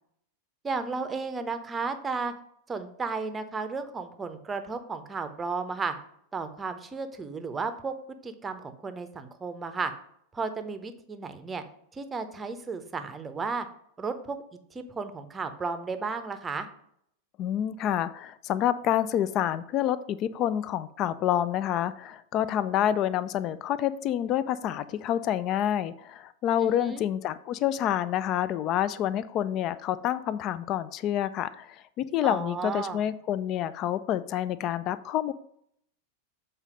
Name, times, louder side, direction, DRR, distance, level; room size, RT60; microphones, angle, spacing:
voice 1, 0.6-2.3 2.7-5.9 6.3-7.9 8.2-9.9 10.3-11.6 11.9-13.7 14.0-14.4 14.7-16.7 26.6-27.0 32.2-33.0, right 4 dB, 15° right, 9 dB, 0.7 m, -33 dB
voice 2, 17.4-35.3, left 11 dB, 35° left, 16 dB, 0.4 m, -28 dB
7.3 x 4.0 x 5.1 m, 0.70 s
figure-of-eight pair, 90°, 0 cm